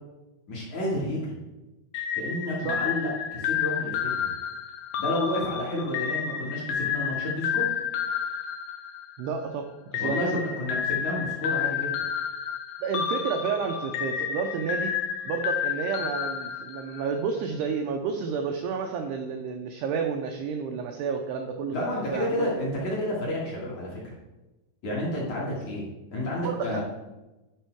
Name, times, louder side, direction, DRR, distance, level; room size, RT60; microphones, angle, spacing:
voice 1, 0.5-1.4 2.1-4.3 5.0-7.7 10.0-12.0 21.7-24.1 24.8-25.9 26.1-26.8, left 1 dB, 50° left, -5 dB, 2.6 m, -30 dB
sound 1, 1.9-9.4 9.9-17.2, left 8 dB, 80° left, 2.4 m, -30 dB
voice 2, 9.2-10.2 12.8-15.0 15.3-22.5 26.4-26.8, right 6 dB, 85° right, 4 dB, 2.4 m, -30 dB
11.0 x 5.6 x 4.6 m, 1.1 s
omnidirectional pair, 5.4 m